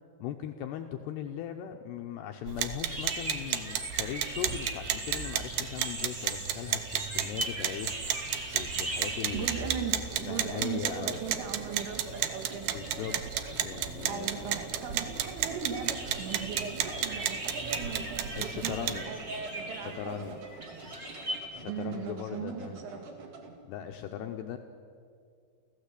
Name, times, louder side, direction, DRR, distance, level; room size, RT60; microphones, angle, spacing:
voice 1, 0.2-8.0 8.5-9.8 10.2-11.2 12.7-13.2 13.6-14.4 18.4-19.1 19.8-20.4 21.5-22.8 23.7-24.6, left 9 dB, 75° left, 4 dB, 2.6 m, -39 dB
sound 1, 2.5-19.0, right 10 dB, 70° right, 2.4 m, -34 dB
sound 2, 2.9-21.4, right 2 dB, 25° right, 1.9 m, -41 dB
sound 3, 8.2-23.6, right 3 dB, 50° right, 3.0 m, -48 dB
voice 2, 9.3-12.7 14.1-20.4 21.7-23.1, right 6 dB, 90° right, 4 dB, 4.7 m, -38 dB
29.0 x 15.5 x 8.3 m, 2.3 s
omnidirectional pair, 5.6 m